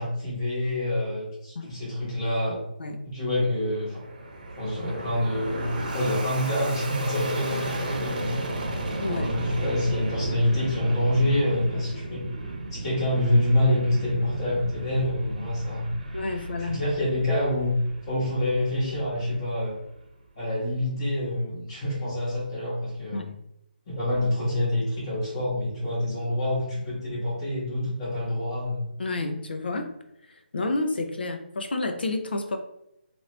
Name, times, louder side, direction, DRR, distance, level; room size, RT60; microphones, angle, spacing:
voice 1, 0.0-2.6 3.0-4.0 4.5-8.6 9.0-12.3 12.7-15.9 16.3-17.8 18.0-19.8 20.4-23.3 23.9-28.9, left 1 dB, 35° left, -6 dB, 1.1 m, -27 dB
Fixed-wing aircraft airplane, 3.5-20.1, right 2 dB, 50° right, 0.8 m, -34 dB
voice 2, 9.0-9.3 16.1-16.8 23.1-23.3 29.0-29.9 30.5-32.6, left 2 dB, 70° left, 6 dB, 0.6 m, -30 dB
2.9 x 2.7 x 3.2 m, 0.82 s
figure-of-eight pair, 150°, 6 cm